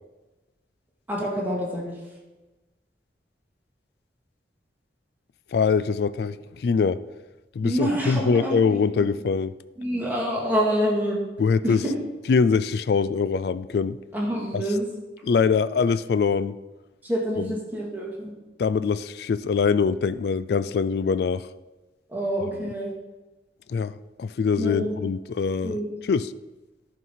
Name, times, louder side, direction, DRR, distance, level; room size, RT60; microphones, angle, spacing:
voice 1, 1.1-1.9 7.6-9.0 9.8-11.2 11.6-12.0 14.1-14.9 17.0-18.3 22.1-22.9 24.6-25.0 25.6-25.9, equal, 10° right, -3 dB, 2.0 m, -27 dB
voice 2, 5.5-7.0 7.6-9.5 11.4-11.8 12.3-14.0 14.5-14.6 15.2-16.5 17.4-17.5 18.6-21.5 22.6-22.7 23.7-26.3, left 5 dB, 60° left, 15 dB, 0.3 m, -23 dB
11.0 x 5.5 x 5.7 m, 1.1 s
head